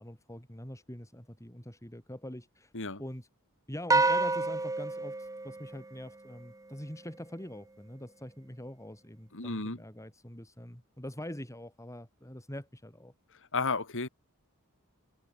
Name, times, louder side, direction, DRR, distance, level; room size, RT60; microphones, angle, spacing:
voice 1, 0.0-2.7 3.0-3.3 3.7-13.1, left 1 dB, 15° left, 6.2 m, -44 dB
sound 1, 3.9-6.4, right 3 dB, 15° right, 0.9 m, -29 dB
voice 2, 9.3-9.8 13.5-14.1, left 4 dB, 60° left, 3.3 m, -32 dB
head